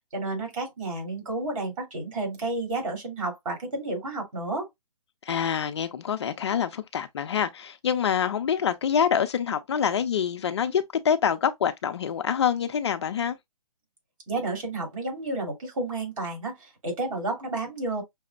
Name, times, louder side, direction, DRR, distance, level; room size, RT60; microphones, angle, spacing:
voice 1, 0.1-4.7 14.3-18.0, right 2 dB, 60° right, 2.9 m, -31 dB
voice 2, 5.3-13.4, left 8 dB, 45° left, 0.4 m, -26 dB
5.8 x 2.1 x 2.4 m
hypercardioid pair, 155°, 19 cm